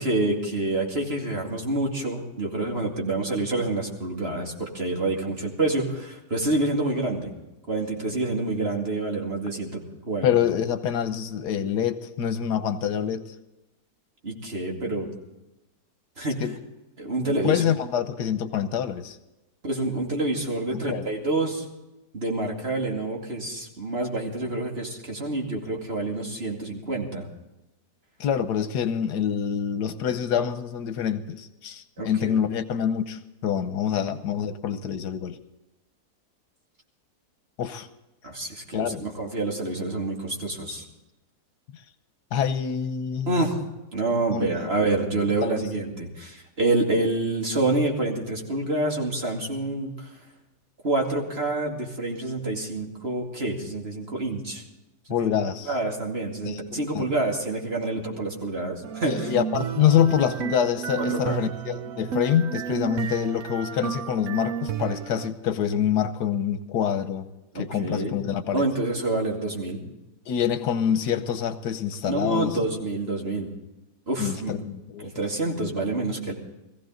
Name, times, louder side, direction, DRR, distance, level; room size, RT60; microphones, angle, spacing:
voice 1, 0.0-7.3 7.7-10.3 14.2-15.1 16.2-16.4 17.0-17.6 19.6-21.7 22.1-27.3 32.0-32.4 38.2-40.8 43.3-43.6 43.9-50.1 50.8-54.6 55.1-55.3 55.7-59.3 61.0-61.4 67.5-68.2 68.5-69.8 72.0-73.5 74.1-74.6 75.0-76.3, right 2 dB, 40° right, 0 dB, 2.6 m, -27 dB
voice 2, 10.2-13.3 16.4-16.5 17.2-19.2 20.7-21.0 28.2-35.4 37.6-37.9 38.7-39.0 42.3-43.5 44.3-44.7 45.4-45.7 55.1-55.7 56.4-57.0 59.0-67.3 67.5-68.6 70.3-72.6 74.2-75.1, left 9 dB, 85° left, 11 dB, 1.5 m, -26 dB
sound 1, 58.8-65.3, right 8 dB, 65° right, 1.2 m, -32 dB
19.0 x 15.5 x 3.9 m, 1.0 s
omnidirectional pair, 1.7 m